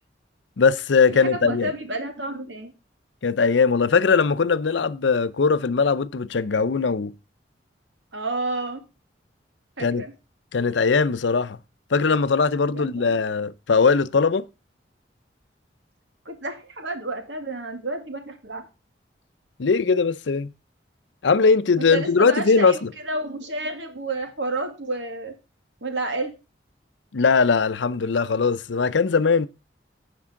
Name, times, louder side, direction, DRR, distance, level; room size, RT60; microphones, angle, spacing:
voice 1, 0.6-1.7 3.2-7.1 9.8-10.0 10.5-11.6 11.9-14.5 19.6-20.5 21.2-22.9 27.1-29.5, left 5 dB, 80° left, 0.6 m, -20 dB
voice 2, 1.1-2.7 8.1-8.8 9.8-10.1 12.5-13.2 16.3-18.7 21.9-25.3 25.8-26.4, right 2 dB, 85° right, 2.3 m, -30 dB
15.5 x 5.5 x 3.7 m
head